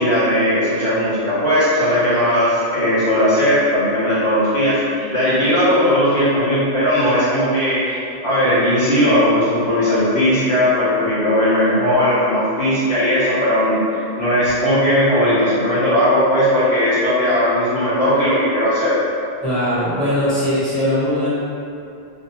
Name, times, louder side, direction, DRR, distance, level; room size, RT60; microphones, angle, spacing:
voice 1, 0.0-19.0, equal, 65° left, -11 dB, 0.9 m, -17 dB
voice 2, 19.4-21.3, left 1 dB, ahead, -14 dB, 1.0 m, -20 dB
2.6 x 2.0 x 2.8 m, 2.6 s
omnidirectional pair, 1.2 m